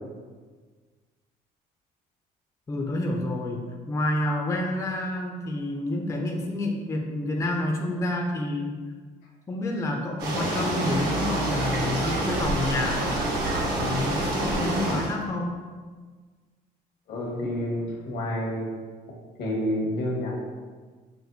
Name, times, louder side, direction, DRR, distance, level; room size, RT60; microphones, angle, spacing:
voice 1, 2.7-8.8 9.5-13.0 13.7-15.6, left 1 dB, 20° left, 1 dB, 0.4 m, -29 dB
sound 1, 10.2-15.1, right 1 dB, 75° right, 1.1 m, -27 dB
voice 2, 17.1-18.7 19.4-20.3, left 1 dB, 80° left, -3 dB, 1.2 m, -29 dB
5.9 x 2.2 x 2.6 m, 1.5 s
cardioid pair, 110°, 17 cm